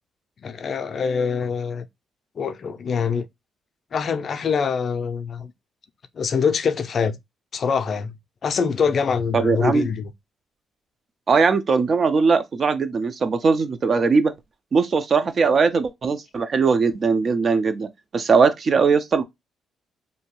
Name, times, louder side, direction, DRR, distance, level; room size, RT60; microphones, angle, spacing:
voice 1, 0.4-1.9 2.4-3.3 3.9-5.5 6.1-7.2 7.5-8.2 8.4-10.1, left 6 dB, 50° left, 0.4 m, -24 dB
voice 2, 9.3-9.9 11.3-14.3 14.7-19.2, right 5 dB, 45° right, 0.4 m, -20 dB
2.7 x 2.2 x 2.9 m
cardioid pair, 90°, 0 cm